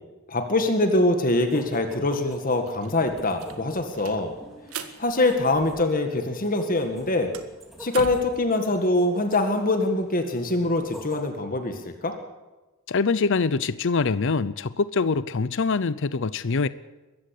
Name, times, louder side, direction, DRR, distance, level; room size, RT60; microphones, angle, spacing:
voice 1, 0.3-4.3 5.0-7.3 7.8-12.2, left 2 dB, 40° left, 1.9 m, -24 dB
sound 1, 1.1-11.2, equal, ahead, 3.8 m, -46 dB
sound 2, 2.5-6.2 6.5-8.4, right 5 dB, 80° right, 1.7 m, -42 dB
voice 2, 12.9-16.7, left 4 dB, 60° left, 0.6 m, -24 dB
23.0 x 14.5 x 8.4 m
head